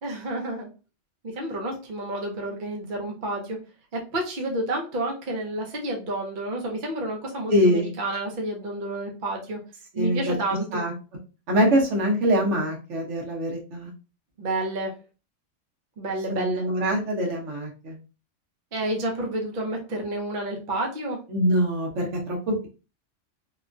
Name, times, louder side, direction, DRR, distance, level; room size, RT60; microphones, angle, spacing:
voice 1, 0.0-0.7 1.2-3.6 3.9-9.6 10.0-10.8 14.4-14.9 16.0-16.7 18.7-21.2, right 1 dB, 50° right, 0 dB, 0.8 m, -30 dB
voice 2, 7.5-7.9 9.9-10.3 10.7-10.9 11.5-13.9 16.1-18.0 21.3-22.7, equal, 75° right, -1 dB, 1.2 m, -24 dB
3.0 x 2.2 x 2.5 m, 0.33 s
omnidirectional pair, 1.2 m